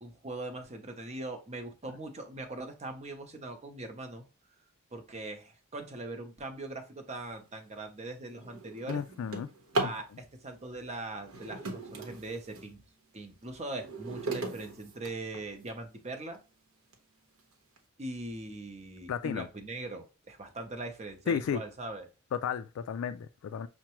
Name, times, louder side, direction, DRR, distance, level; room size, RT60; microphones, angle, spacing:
voice 1, 0.0-4.2 4.9-9.0 9.8-12.8 13.1-16.4 18.0-22.1, right 2 dB, 30° right, 0.8 m, -41 dB
Drawer open or close, 7.4-7.6 8.1-10.1 11.1-12.7 13.3-15.7 16.3-16.4 16.9-17.0 17.4-17.8, right 2 dB, 70° right, 0.9 m, -38 dB
voice 2, 8.9-9.5 9.8-9.9 19.1-19.5 21.3-21.6 22.3-23.7, left 7 dB, 65° left, 0.3 m, -33 dB
5.8 x 2.2 x 2.9 m
head